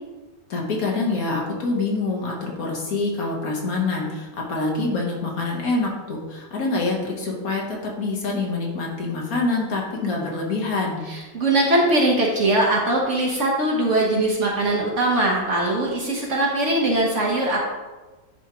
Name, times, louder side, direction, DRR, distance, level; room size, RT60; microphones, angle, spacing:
voice 1, 0.5-11.0, left 3 dB, 60° left, -1 dB, 1.4 m, -26 dB
voice 2, 11.1-17.6, right 1 dB, 50° right, -2 dB, 1.1 m, -21 dB
10.0 x 3.5 x 2.9 m, 1.2 s
omnidirectional pair, 1.8 m